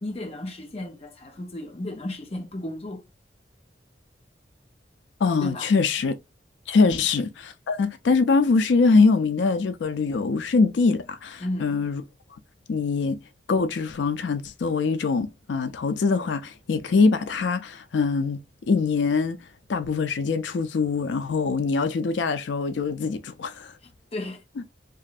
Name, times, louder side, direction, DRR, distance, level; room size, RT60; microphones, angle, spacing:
voice 1, 0.0-3.0 5.4-5.7 6.8-7.1 11.4-11.9 23.8-24.4, left 1 dB, 35° left, 0.6 m, -34 dB
voice 2, 5.2-6.1 6.7-12.0 12.7-13.2 13.5-19.4 19.7-23.7, left 4 dB, 90° left, 0.4 m, -23 dB
3.0 x 2.5 x 2.4 m
head